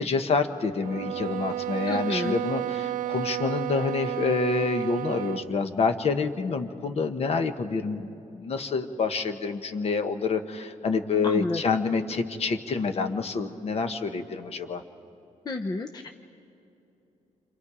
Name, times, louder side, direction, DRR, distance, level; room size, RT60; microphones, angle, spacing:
voice 1, 0.0-14.8, left 4 dB, 50° left, 7 dB, 1.2 m, -27 dB
sound 1, 0.8-5.5, right 13 dB, 85° right, 0.5 m, -32 dB
voice 2, 1.9-2.4 11.2-11.6 15.5-16.2, left 2 dB, 30° left, 5 dB, 0.7 m, -30 dB
29.0 x 26.5 x 4.9 m, 2.9 s
wide cardioid pair, 145°, 13 cm